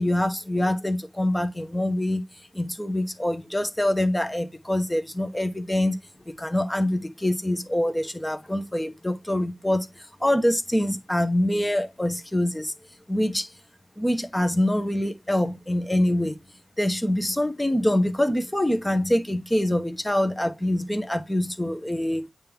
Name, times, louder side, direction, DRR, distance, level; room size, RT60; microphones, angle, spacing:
voice 1, 0.0-2.2 2.5-6.0 6.2-12.7 13.1-13.5 14.0-16.4 16.8-22.3, left 1 dB, 10° left, 1.1 m, -25 dB
8.8 x 3.5 x 3.5 m
wide cardioid pair, 85°, 0 cm